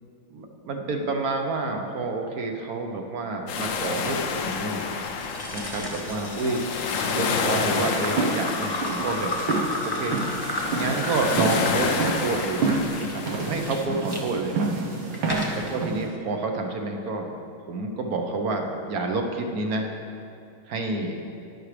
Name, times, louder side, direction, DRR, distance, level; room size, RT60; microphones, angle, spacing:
voice 1, 0.3-4.8 5.5-9.3 9.8-10.2 10.7-14.6 15.5-17.3 17.6-19.9 20.7-21.3, right 3 dB, 60° right, 3 dB, 1.1 m, -29 dB
sound 1, 3.5-13.9, left 5 dB, 85° left, 0.7 m, -30 dB
sound 2, 5.0-14.2 14.8-15.7, left 1 dB, 15° left, 0.8 m, -33 dB
sound 3, 7.6-16.1, right 3 dB, 80° right, 1.9 m, -29 dB
12.0 x 10.5 x 3.3 m, 2.6 s
omnidirectional pair, 2.2 m